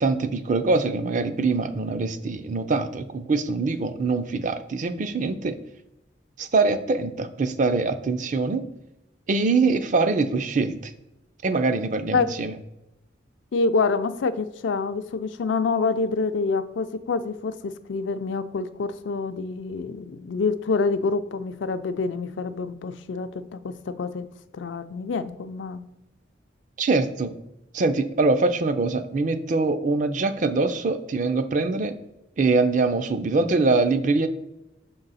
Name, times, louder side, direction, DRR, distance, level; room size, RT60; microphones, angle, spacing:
voice 1, 0.0-5.6 6.4-8.6 9.3-10.9 11.4-12.5 26.8-27.3 27.7-32.0 32.4-34.3, right 3 dB, 45° right, 9 dB, 0.4 m, -23 dB
voice 2, 13.5-24.3 24.5-25.8, left 4 dB, 80° left, 11 dB, 0.4 m, -27 dB
6.1 x 3.8 x 4.1 m, 0.90 s
head